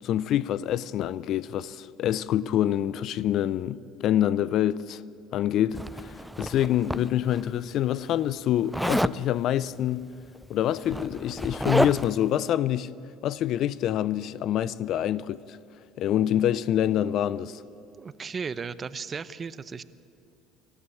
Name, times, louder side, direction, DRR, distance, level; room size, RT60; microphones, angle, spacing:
voice 1, 0.0-5.0 5.3-10.0 10.5-12.9 13.2-15.6 16.0-17.6, left 11 dB, 60° left, 0.6 m, -26 dB
Zipper (clothing), 5.7-7.4 8.7-9.2 10.4-10.5 10.8-12.2, equal, ahead, 0.4 m, -29 dB
voice 2, 18.0-19.8, right 5 dB, 30° right, 0.8 m, -35 dB
25.5 x 14.0 x 8.5 m
supercardioid pair, 90°, 0 cm